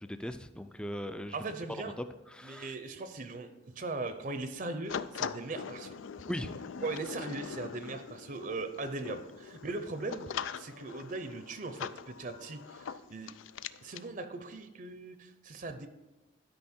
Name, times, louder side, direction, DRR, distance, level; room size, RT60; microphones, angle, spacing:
voice 1, 0.0-1.4 2.3-2.7 6.3-6.5, equal, 5° left, 10 dB, 0.4 m, -39 dB
voice 2, 1.3-1.9 2.4-3.5 3.8-5.9 6.8-13.3 13.8-15.9, right 3 dB, 45° right, 8 dB, 0.6 m, -39 dB
sound 1, 4.9-14.1, left 7 dB, 90° left, 0.4 m, -42 dB
12.0 x 5.3 x 4.3 m, 1.0 s
head